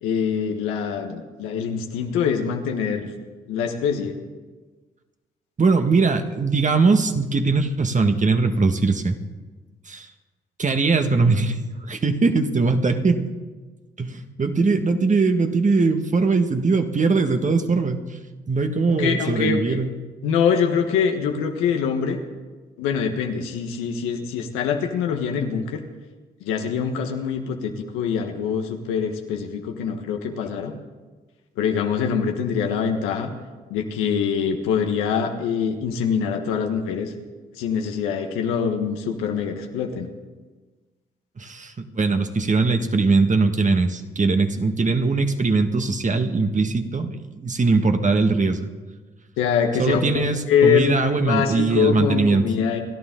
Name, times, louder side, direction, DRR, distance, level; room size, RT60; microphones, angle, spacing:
voice 1, 0.0-3.1 3.5-4.2 18.9-19.8 20.2-22.2 22.8-25.8 26.4-30.7 31.6-33.3 33.7-37.1 37.6-40.1 49.4-52.8, left 7 dB, 85° left, 4 dB, 1.5 m, -24 dB
voice 2, 5.6-9.2 9.9-10.1 10.6-11.6 11.9-13.2 14.0-18.0 18.5-19.9 41.4-48.7 49.8-52.4, right 3 dB, 35° right, 6 dB, 1.6 m, -21 dB
28.5 x 11.5 x 3.8 m, 1.3 s
supercardioid pair, 50°, 21 cm